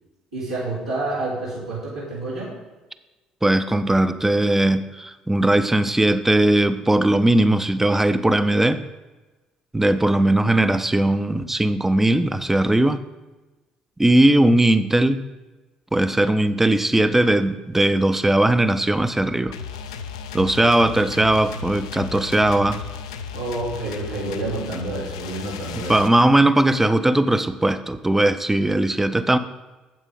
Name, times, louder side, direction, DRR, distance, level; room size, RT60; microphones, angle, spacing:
voice 1, 0.3-2.5 23.3-26.0, right 2 dB, 85° right, -12 dB, 2.8 m, -29 dB
voice 2, 3.4-8.8 9.7-13.0 14.0-15.2 15.9-19.5 20.3-22.8 25.7-29.4, right 1 dB, 10° right, 12 dB, 0.6 m, -19 dB
sound 1, 19.5-26.1, left 6 dB, 75° left, 0.5 m, -34 dB
9.2 x 8.1 x 3.8 m, 1.1 s
figure-of-eight pair, 50°, 3 cm